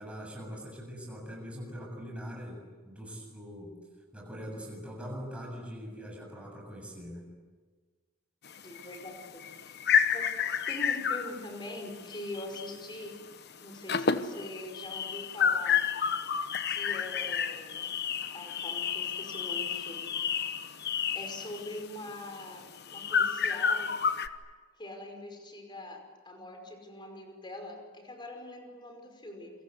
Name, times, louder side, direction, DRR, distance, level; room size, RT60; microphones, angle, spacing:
voice 1, 0.0-2.6 2.9-3.7 4.1-7.3, equal, 5° right, -1 dB, 7.6 m, -42 dB
sound 1, 8.5-12.8 13.1-13.3 13.6-24.3, left 7 dB, 50° left, 1.1 m, -30 dB
voice 2, 8.6-9.8 10.1-13.2 13.6-15.8 16.7-17.9 18.3-20.1 21.1-23.9 24.8-29.5, left 1 dB, 20° left, 4 dB, 5.2 m, -43 dB
29.0 x 24.0 x 8.2 m, 1.4 s
head